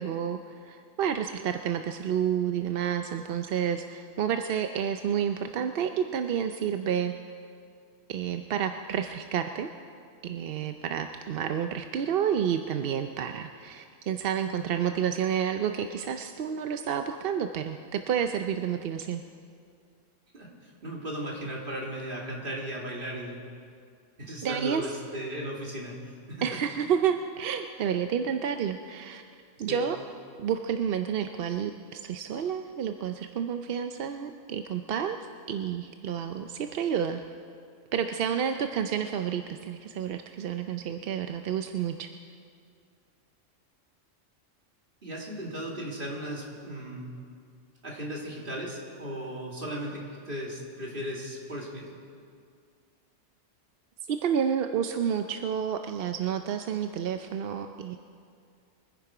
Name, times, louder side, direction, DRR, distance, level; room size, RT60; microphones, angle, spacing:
voice 1, 0.0-7.1 8.1-9.7 10.2-19.2 24.4-24.8 26.4-29.2 29.6-30.0 30.4-35.2 35.5-37.2 37.9-42.1 54.1-58.0, right 8 dB, 60° right, 7 dB, 0.7 m, -30 dB
voice 2, 20.3-23.4 24.2-26.4 29.7-29.8 45.0-47.1 47.8-52.0, equal, 45° right, -2 dB, 2.6 m, -36 dB
23.5 x 10.5 x 4.9 m, 2.3 s
omnidirectional pair, 1.3 m